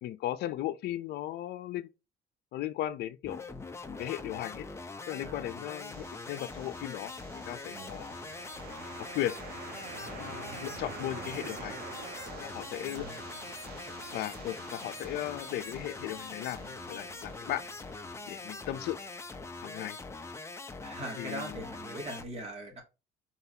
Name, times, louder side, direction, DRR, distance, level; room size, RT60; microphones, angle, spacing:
voice 1, 0.0-1.9 2.5-3.4 3.9-4.7 5.1-7.1 7.5-8.1 9.1-9.4 10.0-11.8 12.4-13.1 14.1-17.6 18.3-19.0 19.6-20.0 21.2-21.6, left 13 dB, 75° left, 0.6 m, -36 dB
sound 1, 3.2-22.3, left 3 dB, 15° left, 0.6 m, -43 dB
sound 2, 5.8-19.6, right 5 dB, 70° right, 1.5 m, -47 dB
voice 2, 12.8-13.2 20.8-22.8, right 1 dB, 40° right, 2.4 m, -41 dB
4.4 x 4.0 x 2.8 m
cardioid pair, 110°, 17 cm